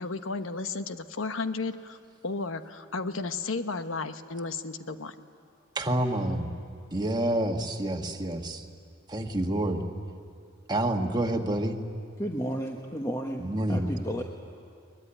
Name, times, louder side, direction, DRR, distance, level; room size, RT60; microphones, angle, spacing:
voice 1, 0.0-2.0 2.2-5.3, left 3 dB, 90° left, 9 dB, 1.1 m, -33 dB
voice 2, 5.7-6.5 6.9-8.6 9.1-9.8 10.7-11.8 13.4-13.9, right 1 dB, 20° right, 3 dB, 1.5 m, -28 dB
voice 3, 12.2-14.2, equal, 15° left, 1 dB, 1.2 m, -33 dB
22.5 x 20.5 x 9.9 m, 2.3 s
head